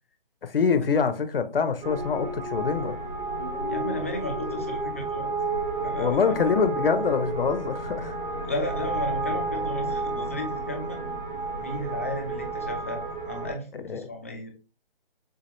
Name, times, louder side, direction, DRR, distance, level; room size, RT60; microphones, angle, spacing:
voice 1, 0.4-2.9 6.0-8.1 13.8-14.1, left 6 dB, 75° left, 0.9 m, -25 dB
sound 1, 1.8-13.5, right 3 dB, 60° right, 1.8 m, -31 dB
voice 2, 3.7-5.3 5.8-6.4 8.4-11.0 11.6-14.5, left 1 dB, 15° left, 0.4 m, -34 dB
6.6 x 2.5 x 3.0 m
hypercardioid pair, 155°, 29 cm